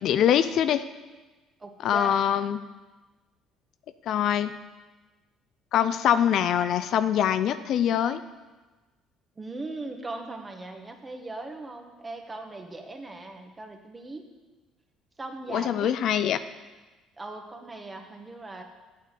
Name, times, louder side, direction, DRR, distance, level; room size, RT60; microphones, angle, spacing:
voice 1, 0.0-0.8 1.8-2.6 4.1-4.5 5.7-8.2 15.5-16.4, left 9 dB, 60° left, 11 dB, 0.5 m, -23 dB
voice 2, 1.6-2.2 9.4-14.2 15.2-15.9 17.2-18.6, right 2 dB, 25° right, 4 dB, 1.8 m, -39 dB
8.5 x 6.4 x 8.0 m, 1.2 s
hypercardioid pair, 55°, 0 cm